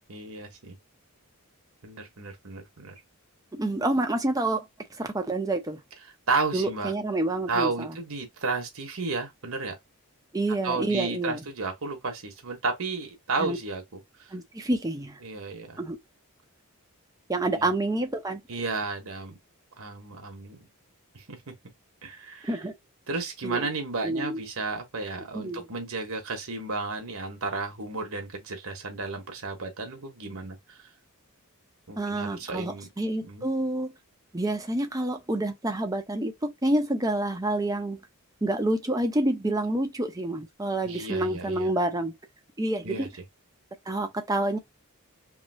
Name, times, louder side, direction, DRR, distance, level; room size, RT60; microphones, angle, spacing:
voice 1, 0.1-0.8 1.8-3.0 6.3-6.9 7.5-9.8 10.6-14.0 15.2-15.8 17.5-17.7 18.5-19.4 19.8-20.7 21.1-21.5 22.0-22.6 23.1-30.8 31.9-32.9 33.2-33.5 40.8-41.7 42.8-43.1, right 3 dB, 65° right, 1.1 m, -33 dB
voice 2, 3.5-4.6 5.0-5.8 6.5-8.0 10.3-11.4 13.4-13.6 14.3-15.2 15.8-16.0 17.3-18.4 22.4-22.7 23.4-23.7 24.0-24.4 25.3-25.7 32.0-33.9 34.3-38.0 38.4-42.1 42.6-43.1 43.9-44.6, right 1 dB, 15° right, 0.7 m, -28 dB
3.1 x 2.6 x 2.6 m
head